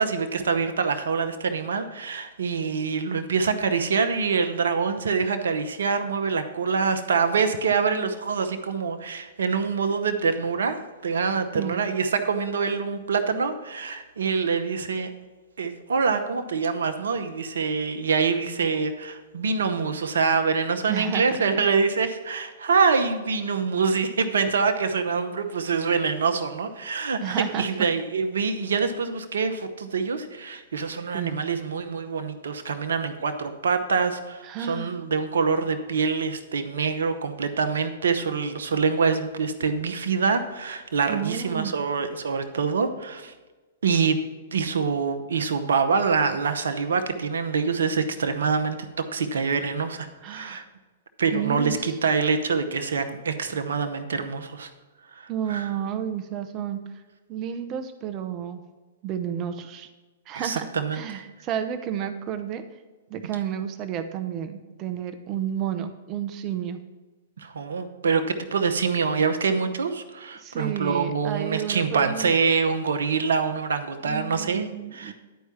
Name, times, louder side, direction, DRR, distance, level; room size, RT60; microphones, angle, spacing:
voice 1, 0.0-10.8 11.0-15.1 15.6-43.3 43.8-44.2 44.5-50.6 51.2-54.7 55.1-55.2 55.5-55.7 60.3-61.0 67.4-75.1, right 5 dB, 75° right, 7 dB, 0.7 m, -25 dB
voice 2, 20.9-21.3 21.5-21.6 27.2-27.7 31.1-31.3 34.4-34.9 41.1-41.7 50.2-50.7 51.3-51.9 55.3-56.8 57.3-58.6 59.0-59.9 60.3-60.7 60.9-62.6 63.1-66.8 70.4-72.3 74.0-75.1, right 9 dB, 35° right, 8 dB, 0.8 m, -31 dB
10.5 x 4.6 x 5.7 m, 1.3 s
hypercardioid pair, 115°, 0 cm